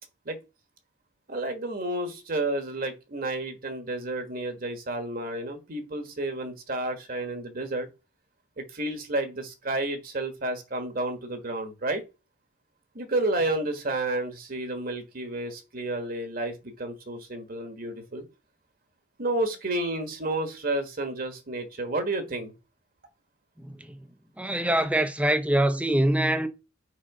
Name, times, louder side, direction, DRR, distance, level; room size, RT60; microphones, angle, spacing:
voice 1, 1.3-7.9 8.6-12.0 12.9-18.2 19.2-22.5, right 2 dB, 45° right, 1.4 m, -31 dB
voice 2, 23.6-24.0 24.4-26.5, right 1 dB, 5° right, 0.7 m, -24 dB
6.3 x 4.9 x 4.8 m
head